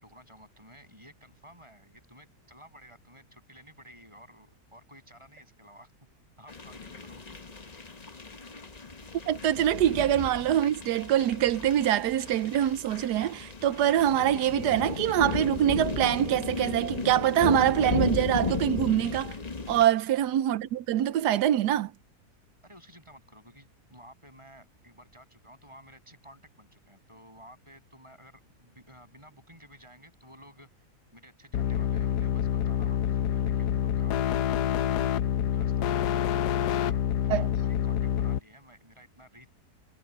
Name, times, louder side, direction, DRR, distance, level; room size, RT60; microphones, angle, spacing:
voice 1, 0.0-5.9 6.4-7.2 19.8-20.0 22.6-30.9 31.1-34.4 34.8-35.1 35.5-39.5, equal, 15° right, 8.0 m, -53 dB
sound 1, 6.5-19.9, left 4 dB, 25° left, 1.1 m, -34 dB
voice 2, 9.3-19.4 19.7-21.9 37.3-37.5, right 11 dB, 80° right, 1.3 m, -24 dB
sound 2, 31.5-38.4, left 10 dB, 80° left, 1.3 m, -27 dB
omnidirectional pair, 1.8 m